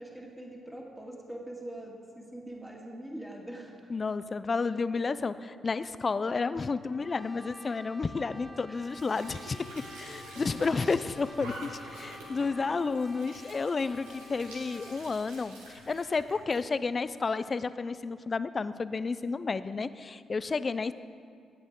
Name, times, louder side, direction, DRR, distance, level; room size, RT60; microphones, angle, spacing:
voice 1, 0.0-3.9 8.7-8.8 10.3-10.4, right 1 dB, 5° right, -1 dB, 2.2 m, -43 dB
voice 2, 3.9-9.6 10.0-20.9, left 4 dB, 40° left, 14 dB, 0.5 m, -31 dB
Brass instrument, 6.9-15.1, left 2 dB, 10° left, 1.0 m, -50 dB
Squeak / Sink (filling or washing) / Trickle dribble, 8.7-16.6, right 1 dB, 90° right, 2.0 m, -47 dB
16.0 x 8.7 x 3.8 m, 2.2 s
hypercardioid pair, 45°, 0 cm